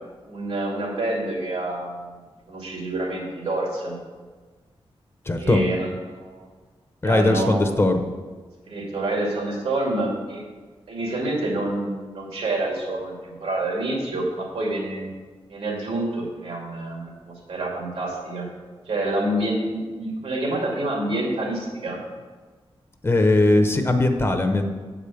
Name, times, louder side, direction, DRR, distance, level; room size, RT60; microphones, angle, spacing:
voice 1, 0.3-2.2 2.5-4.0 5.4-6.5 7.0-7.7 8.7-10.4 10.9-15.1 15.5-18.5 18.9-22.0, right 1 dB, 90° right, -2 dB, 2.5 m, -27 dB
voice 2, 5.3-5.6 7.0-8.1 23.0-24.7, left 2 dB, 25° left, 6 dB, 0.7 m, -19 dB
8.0 x 5.0 x 7.0 m, 1.4 s
wide cardioid pair, 135°, 10 cm